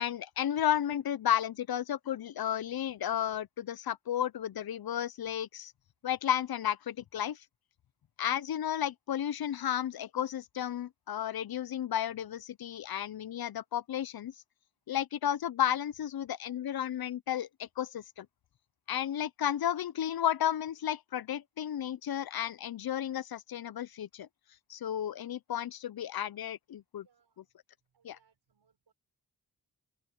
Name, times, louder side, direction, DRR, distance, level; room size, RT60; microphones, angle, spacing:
voice 1, 0.0-5.7 6.0-7.4 8.2-14.3 14.9-18.3 18.9-24.3 24.7-27.0 28.0-28.2, left 10 dB, 70° left, 0.6 m, -33 dB
voice 2, 27.0-27.5 27.8-28.9, right 7 dB, 85° right, 6.2 m, -71 dB
open air
cardioid pair, 60°, 38 cm